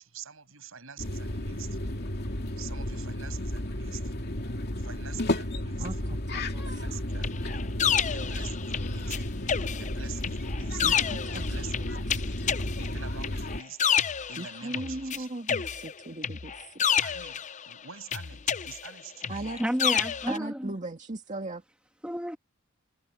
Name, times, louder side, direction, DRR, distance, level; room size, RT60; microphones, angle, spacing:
voice 1, 0.0-1.8 2.6-4.1 4.8-6.0 6.6-7.6 8.1-9.2 9.8-10.9 11.3-12.3 12.8-13.9 14.3-15.3 17.0-19.6, right 7 dB, 70° right, 7.4 m, -46 dB
sound 1, 1.0-13.6, left 1 dB, 50° left, 2.7 m, -33 dB
voice 2, 5.8-6.8 7.1-7.2 10.8-11.4 11.8-12.5 14.4-16.8 19.3-19.6 20.3-21.6, right 2 dB, 35° right, 2.0 m, -38 dB
sound 2, 7.2-9.2 9.5-15.2 15.5-17.7 18.1-20.4, left 8 dB, 35° left, 0.6 m, -29 dB
voice 3, 19.6-20.7 22.0-22.4, equal, 5° right, 1.5 m, -30 dB
head